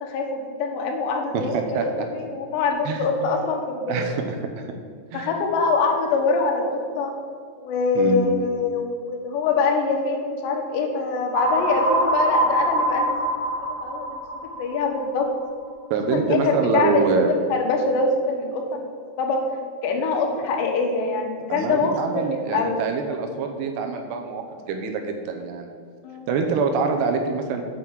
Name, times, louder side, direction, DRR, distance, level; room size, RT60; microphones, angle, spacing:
voice 1, 0.0-4.0 5.1-7.2 7.6-13.1 13.4-13.5 13.8-14.2 14.6-15.3 16.1-18.7 19.2-19.4 19.8-22.8 26.0-26.3, left 4 dB, 80° left, 2 dB, 3.4 m, -24 dB
voice 2, 1.3-1.9 2.9-3.1 3.9-4.6 5.1-5.3 8.0-8.3 15.9-17.3 21.5-25.7 26.3-27.6, right 5 dB, 80° right, 4 dB, 2.8 m, -25 dB
sound 1, 11.3-15.2, right 1 dB, 45° right, 2.7 m, -24 dB
7.6 x 6.3 x 7.1 m, 2.2 s
omnidirectional pair, 5.0 m